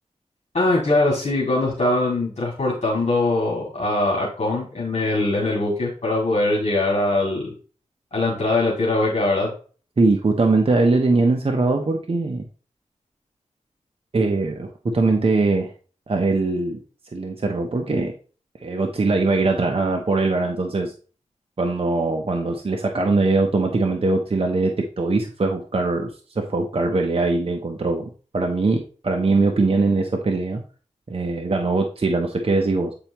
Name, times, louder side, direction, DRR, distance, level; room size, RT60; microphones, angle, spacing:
voice 1, 0.5-7.5 8.1-9.5, left 2 dB, 60° left, -4 dB, 2.2 m, -22 dB
voice 2, 10.0-12.5 14.1-15.7 16.1-16.8 17.1-18.1 18.6-20.9 21.6-30.6 31.1-32.9, right 3 dB, 45° right, 3 dB, 0.8 m, -21 dB
8.8 x 4.4 x 2.9 m, 0.40 s
wide cardioid pair, 65°, 13 cm